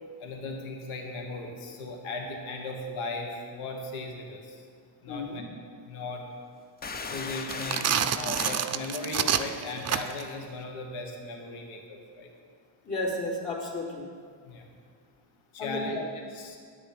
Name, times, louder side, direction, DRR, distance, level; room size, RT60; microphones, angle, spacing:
voice 1, 0.2-4.7 5.0-5.4 5.9-6.3 7.1-12.3 14.4-14.7 15.5-16.0 16.3-16.6, left 2 dB, 75° left, 2 dB, 1.5 m, -37 dB
voice 2, 5.1-5.4 12.8-14.1 15.6-16.0, left 2 dB, 60° left, -8 dB, 3.0 m, -33 dB
sound 1, 6.8-8.0 8.3-8.7, left 4 dB, 20° left, 0.5 m, -37 dB
sound 2, 7.4-10.3, right 8 dB, 35° right, 0.5 m, -28 dB
9.7 x 8.7 x 5.1 m, 2.1 s
cardioid pair, 80°, 49 cm